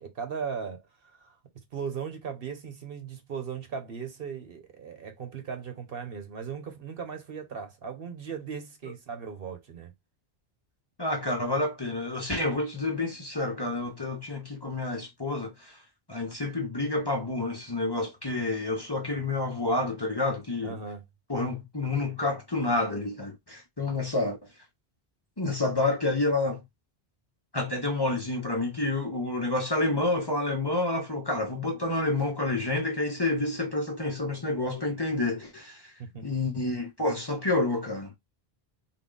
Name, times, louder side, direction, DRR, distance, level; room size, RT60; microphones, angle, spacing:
voice 1, 0.0-1.4 1.7-9.9 20.6-21.0 36.0-36.3, right 6 dB, 65° right, 1.1 m, -38 dB
voice 2, 11.0-15.8 16.1-20.8 21.3-24.4 25.4-26.6 27.5-35.9 36.2-38.1, left 2 dB, 25° left, 0.7 m, -29 dB
3.7 x 2.2 x 3.8 m
omnidirectional pair, 1.0 m